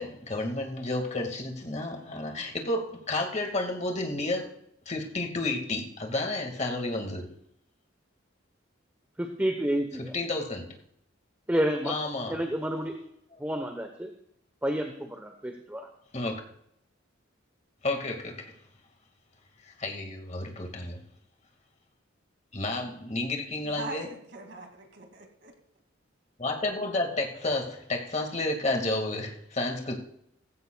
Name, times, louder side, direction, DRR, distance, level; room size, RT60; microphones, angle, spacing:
voice 1, 0.0-4.6 4.9-7.3 10.0-10.7 11.8-12.4 16.1-16.4 17.8-18.5 19.7-21.0 22.5-24.1 26.4-30.0, left 2 dB, 35° left, 3 dB, 2.0 m, -31 dB
voice 2, 9.2-10.1 11.5-11.9 12.3-12.9 13.4-14.1 14.6-15.9, equal, 10° right, 4 dB, 0.9 m, -29 dB
voice 3, 23.6-25.5, right 3 dB, 60° right, 3 dB, 2.4 m, -42 dB
16.5 x 15.5 x 2.3 m, 0.73 s
head